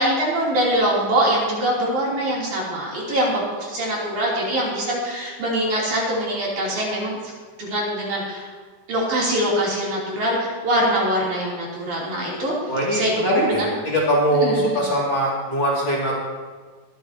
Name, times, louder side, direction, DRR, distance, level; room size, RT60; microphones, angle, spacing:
voice 1, 0.0-7.2 7.6-8.5 8.9-12.5 12.9-13.7 14.4-14.8, right 1 dB, 60° right, -5 dB, 4.5 m, -23 dB
voice 2, 12.7-16.1, equal, 40° left, -6 dB, 2.8 m, -21 dB
22.5 x 10.5 x 2.9 m, 1.4 s
omnidirectional pair, 3.9 m